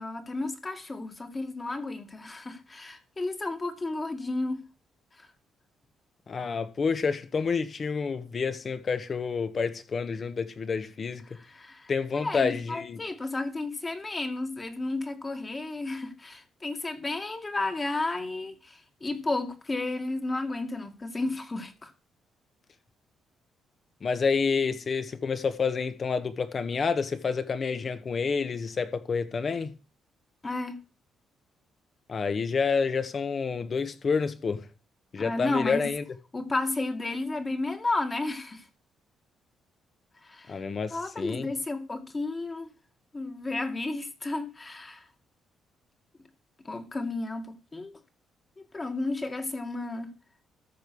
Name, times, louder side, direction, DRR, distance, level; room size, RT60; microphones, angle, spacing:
voice 1, 0.0-4.6 5.2-5.3 11.3-21.9 30.4-30.8 35.2-35.9 36.3-38.6 40.2-40.6 40.9-42.7 43.1-45.1 46.6-47.9 48.6-50.1, left 2 dB, 25° left, 2.0 m, -32 dB
voice 2, 6.3-11.2 11.9-13.0 24.0-29.7 32.1-34.6 35.1-36.0 40.5-41.5, left 5 dB, 40° left, 1.4 m, -29 dB
13.5 x 5.4 x 6.3 m
cardioid pair, 90°, 0 cm